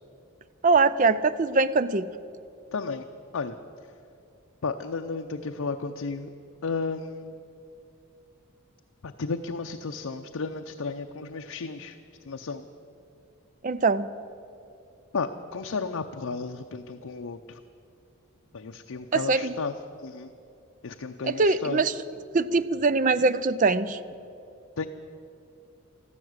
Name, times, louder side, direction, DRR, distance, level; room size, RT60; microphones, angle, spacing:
voice 1, 0.6-2.1 13.6-14.1 19.1-19.5 21.2-21.9 22.3-24.0, right 4 dB, 35° right, 15 dB, 0.4 m, -22 dB
voice 2, 2.7-3.1 3.3-3.6 4.6-6.3 6.6-7.3 9.0-12.0 12.2-12.6 15.1-17.6 18.5-19.8 20.0-20.3 20.8-21.8 24.8-24.9, left 4 dB, 80° left, 5 dB, 0.6 m, -33 dB
13.5 x 12.5 x 8.0 m, 2.6 s
head